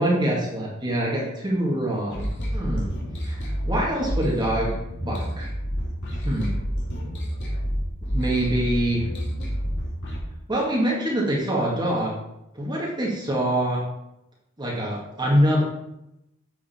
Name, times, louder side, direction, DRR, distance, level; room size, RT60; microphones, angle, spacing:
voice 1, 0.0-2.9 3.2-4.8 5.0-5.5 6.2-6.6 8.1-9.1 10.5-12.1 12.5-13.8 14.6-15.6, right 1 dB, 20° right, -5 dB, 1.8 m, -24 dB
sound 1, 2.1-10.2, equal, 55° left, 2.5 m, -29 dB
9.2 x 6.5 x 4.3 m, 0.87 s
head